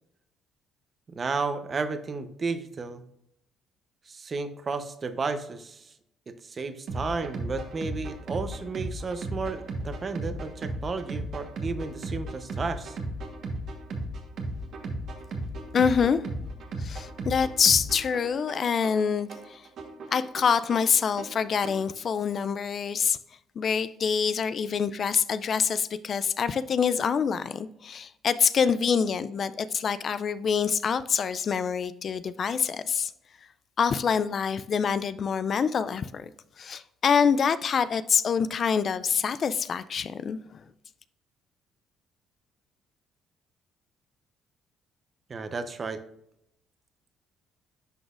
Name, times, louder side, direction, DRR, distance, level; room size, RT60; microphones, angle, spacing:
voice 1, 1.1-3.0 4.1-5.9 6.3-13.0 45.3-46.0, right 4 dB, 35° right, 10 dB, 0.7 m, -33 dB
sound 1, 6.9-21.9, right 1 dB, 65° right, 1.2 m, -36 dB
voice 2, 15.7-16.2 16.8-19.7 20.1-23.2 23.6-33.1 33.8-36.3 36.6-40.6, left 6 dB, 50° left, 14 dB, 0.3 m, -26 dB
11.0 x 3.9 x 2.5 m, 0.77 s
cardioid pair, 95°, 0 cm